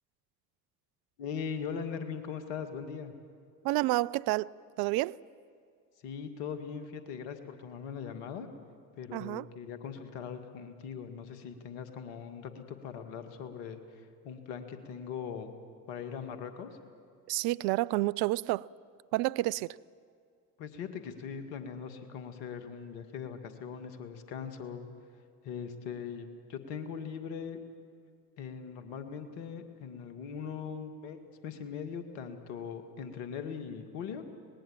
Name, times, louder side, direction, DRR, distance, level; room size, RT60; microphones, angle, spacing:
voice 1, 1.2-3.1 6.0-8.5 9.0-15.5 15.9-16.7 20.6-24.9 25.4-27.6 28.4-34.2, left 7 dB, 65° left, 2.1 m, -40 dB
voice 2, 3.6-4.5 4.8-5.2 9.1-9.5 17.3-18.7 19.1-19.8, right 19 dB, 50° right, 0.5 m, -29 dB
25.0 x 20.0 x 7.3 m
figure-of-eight pair, 60°, 48 cm